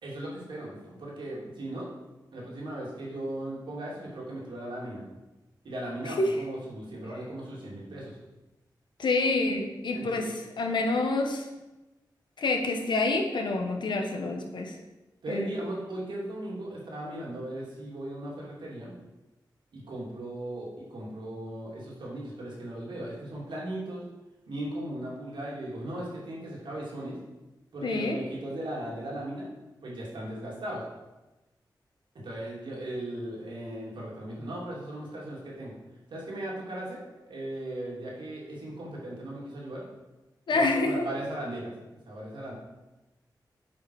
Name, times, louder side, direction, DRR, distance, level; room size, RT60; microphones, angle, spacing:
voice 1, 0.0-1.9 2.3-5.0 5.6-8.2 9.9-10.2 15.2-18.9 19.7-24.0 24.5-27.2 27.7-29.5 29.8-30.8 32.1-35.7 36.1-39.9 40.5-41.7 42.1-42.5, right 1 dB, 90° right, -5 dB, 2.7 m, -37 dB
voice 2, 9.0-11.4 12.4-14.7 15.3-15.5 27.8-28.2 40.5-41.1, left 2 dB, 80° left, 3 dB, 1.2 m, -27 dB
7.7 x 5.4 x 4.8 m, 1.1 s
wide cardioid pair, 125°, 8 cm